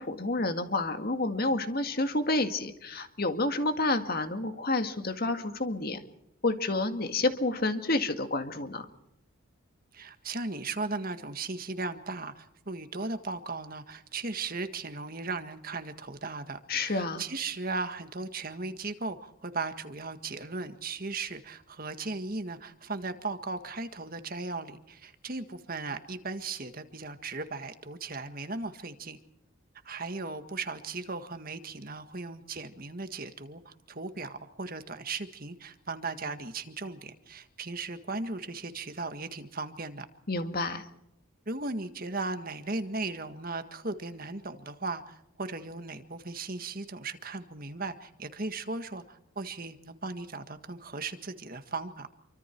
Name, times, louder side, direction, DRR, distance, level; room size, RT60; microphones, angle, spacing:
voice 1, 0.0-6.0 6.4-8.9 16.7-17.2 40.3-40.9, left 2 dB, 45° left, 7 dB, 2.0 m, -29 dB
voice 2, 9.9-29.2 29.8-40.1 41.4-52.1, right 3 dB, 40° right, 8 dB, 1.7 m, -37 dB
28.0 x 24.5 x 4.6 m, 0.78 s
head